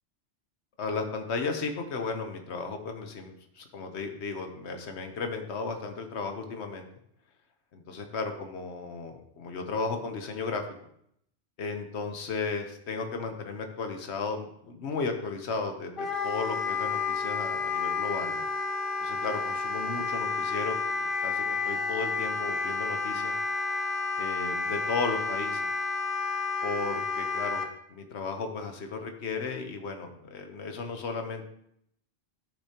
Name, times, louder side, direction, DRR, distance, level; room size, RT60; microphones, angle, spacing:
voice 1, 0.8-6.9 7.7-10.6 11.6-18.5 19.0-23.3 24.2-25.7 26.6-27.6 27.9-31.4, left 4 dB, 80° left, 5 dB, 1.2 m, -34 dB
Wind instrument woodwind instrument, 16.0-27.7, left 4 dB, 55° left, 1.0 m, -31 dB
11.5 x 6.7 x 2.9 m, 0.71 s
omnidirectional pair, 1.1 m